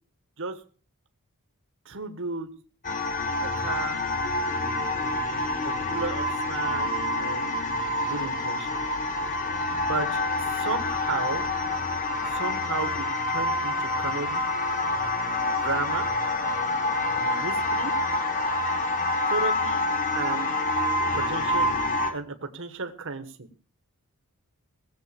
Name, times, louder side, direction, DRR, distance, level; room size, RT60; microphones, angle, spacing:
voice 1, 1.8-2.5 3.4-4.0 5.6-6.9 7.2-7.6 8.0-8.7 9.8-11.5 12.3-14.4 15.6-16.1 17.2-17.9 19.3-19.8 20.1-20.5 21.1-21.8 22.1-23.5, right 4 dB, 60° right, 7 dB, 1.4 m, -33 dB
sound 1, 2.8-22.1, left 2 dB, 40° left, 2.1 m, -27 dB
17.0 x 7.7 x 6.9 m, 0.40 s
head